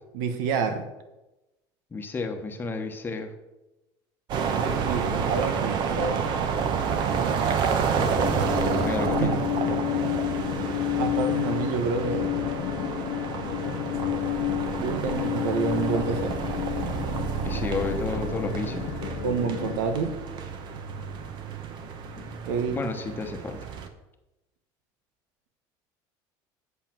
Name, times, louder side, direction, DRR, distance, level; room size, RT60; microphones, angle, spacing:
voice 1, 0.1-0.8 4.7-6.3 9.2-9.3 10.0-10.2 11.0-12.3 14.8-16.4 19.2-20.1 22.4-22.8, right 5 dB, 85° right, 8 dB, 1.3 m, -28 dB
voice 2, 1.9-3.3 7.9-8.1 8.8-9.4 17.4-18.9 22.7-23.7, left 4 dB, 20° left, 5 dB, 1.1 m, -32 dB
sound 1, 4.3-23.9, right 6 dB, 50° right, 1.1 m, -29 dB
sound 2, 8.2-19.8, left 16 dB, 70° left, 0.5 m, -30 dB
8.5 x 7.0 x 6.1 m, 1.0 s
cardioid pair, 140°, 10 cm